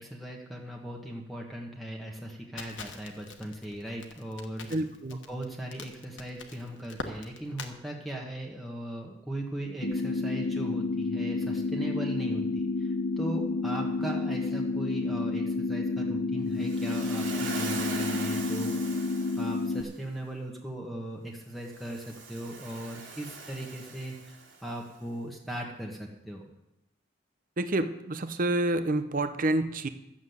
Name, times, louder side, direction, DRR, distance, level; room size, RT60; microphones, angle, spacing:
voice 1, 0.0-4.7 5.3-18.8 19.4-26.5, right 1 dB, ahead, -1 dB, 1.4 m, -38 dB
Crackle, 2.6-7.7, left 4 dB, 80° left, 1.4 m, -43 dB
voice 2, 4.7-5.2 27.6-29.9, right 1 dB, 45° right, 10 dB, 0.7 m, -28 dB
sound 1, 9.8-19.8, left 3 dB, 50° left, 1.2 m, -30 dB
Waves surf, 16.6-19.8 21.6-24.7, right 4 dB, 85° right, 2.9 m, -41 dB
12.0 x 7.4 x 8.0 m, 0.89 s
head